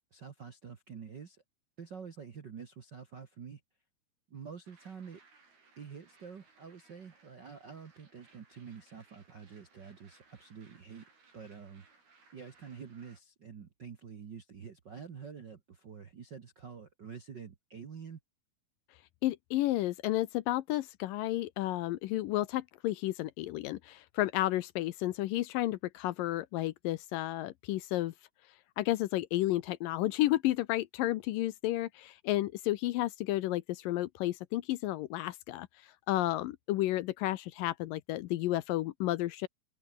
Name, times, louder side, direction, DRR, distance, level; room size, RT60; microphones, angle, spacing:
voice 1, 0.1-1.4 1.8-3.6 4.3-5.2 5.8-11.1 11.3-11.9 12.3-18.2, right 6 dB, 55° right, 1.2 m, -47 dB
sound 1, 4.7-13.2, right 4 dB, 85° right, 9.3 m, -64 dB
voice 2, 19.2-28.1 28.8-35.7 36.1-39.5, left 16 dB, 75° left, 2.3 m, -32 dB
omnidirectional pair, 4.3 m